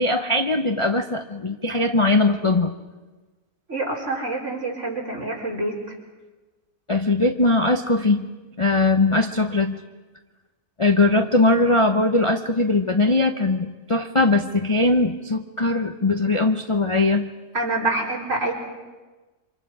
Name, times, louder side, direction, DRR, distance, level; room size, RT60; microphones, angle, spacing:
voice 1, 0.0-2.7 6.9-8.3 8.6-9.8 10.8-17.3, left 2 dB, 25° left, 5 dB, 0.7 m, -20 dB
voice 2, 3.7-5.8 17.5-18.5, right 2 dB, 50° right, -2 dB, 4.8 m, -26 dB
28.0 x 26.0 x 4.9 m, 1.2 s
omnidirectional pair, 1.6 m